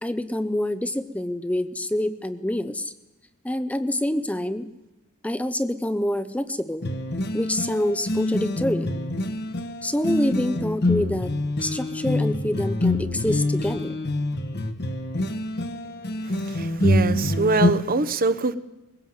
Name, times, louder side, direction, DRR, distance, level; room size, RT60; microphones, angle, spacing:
voice 1, 0.0-2.9 3.4-4.7 5.2-6.9 7.3-8.9 9.8-11.3 11.6-13.9, left 1 dB, 5° left, 11 dB, 0.6 m, -26 dB
sound 1, 6.8-17.7, left 1 dB, 50° left, 1.3 m, -26 dB
voice 2, 16.3-18.5, right 3 dB, 40° right, 13 dB, 1.0 m, -24 dB
22.0 x 16.5 x 7.9 m, 0.99 s
head